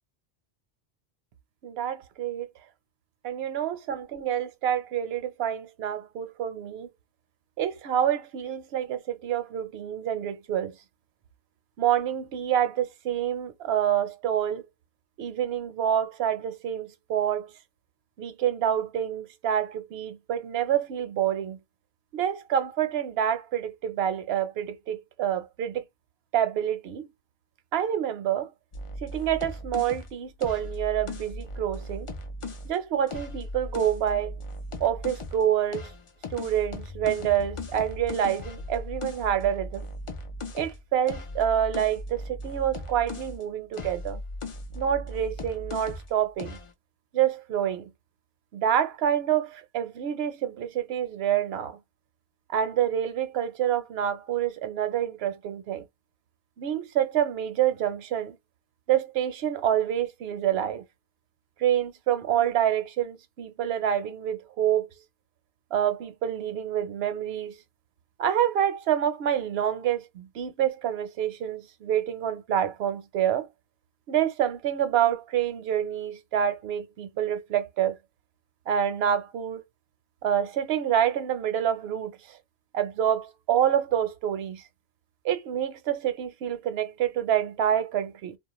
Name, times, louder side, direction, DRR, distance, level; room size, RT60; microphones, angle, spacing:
voice 1, 1.6-2.5 3.2-6.9 7.6-10.8 11.8-14.6 15.2-17.5 18.2-21.6 22.1-25.8 26.3-27.1 27.7-28.5 29.0-32.1 32.6-34.4 34.8-35.9 36.3-39.9 40.5-44.2 44.7-46.6 47.1-47.9 48.5-51.8 52.5-55.9 56.6-58.4 58.9-60.8 61.6-64.9 65.7-67.5 68.2-73.5 74.1-78.0 78.7-79.6 80.2-82.4 82.7-84.6 85.2-88.4, right 10 dB, 75° right, 0.8 m, -27 dB
sound 1, 28.7-32.7 33.1-35.4 35.7-43.4 43.7-46.1 46.4-46.7, left 2 dB, 45° left, 0.4 m, -38 dB
2.3 x 2.0 x 2.9 m
omnidirectional pair, 1.1 m